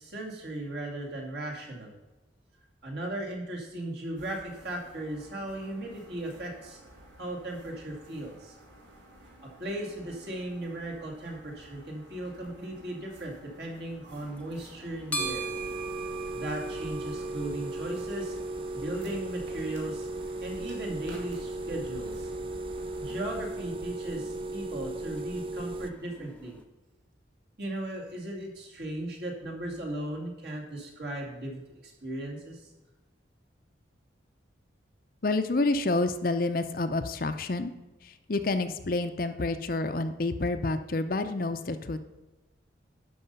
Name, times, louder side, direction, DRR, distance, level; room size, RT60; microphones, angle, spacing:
voice 1, 0.0-2.0 2.8-6.8 7.2-8.6 9.4-15.5 16.3-18.4 18.7-20.1 20.4-22.3 23.0-26.6 27.6-32.7, right 1 dB, 60° right, -1 dB, 2.4 m, -37 dB
sound 1, 4.2-23.5, right 1 dB, 80° right, 2.7 m, -53 dB
sound 2, 14.1-26.6, right 3 dB, 5° left, 0.7 m, -44 dB
sound 3, 15.2-25.9, right 2 dB, 30° right, 0.4 m, -36 dB
voice 2, 35.2-37.7 38.0-42.0, left 2 dB, 50° left, 9 dB, 0.6 m, -28 dB
11.5 x 5.6 x 5.4 m, 1.1 s
head